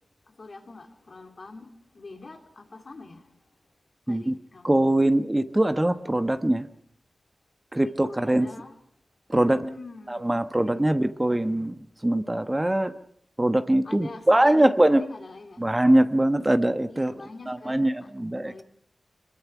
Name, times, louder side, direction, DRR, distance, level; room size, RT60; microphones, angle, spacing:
voice 1, 0.3-3.3 4.1-5.6 7.8-8.8 9.4-11.0 13.8-15.7 16.9-18.6, left 3 dB, 55° left, 5 dB, 3.0 m, -44 dB
voice 2, 4.6-6.7 7.7-8.5 9.3-9.6 10.1-12.9 13.4-15.0 15.6-17.1 17.5-18.6, right 1 dB, 20° right, 10 dB, 1.1 m, -22 dB
24.5 x 21.5 x 6.0 m, 0.65 s
cardioid pair, 60°, 0 cm